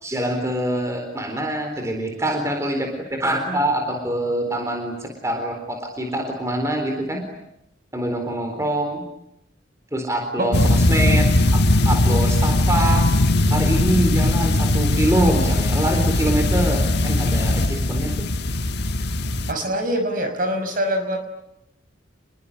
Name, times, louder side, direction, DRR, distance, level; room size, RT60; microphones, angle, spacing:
voice 1, 0.0-7.2 7.9-9.0 9.9-13.1 13.5-18.3, right 1 dB, 15° right, 4 dB, 4.0 m, -25 dB
sound 1, 10.5-19.5, left 1 dB, 55° left, 1.5 m, -19 dB
voice 2, 19.5-21.2, equal, 45° right, 7 dB, 5.6 m, -24 dB
28.0 x 21.5 x 9.8 m, 0.81 s
head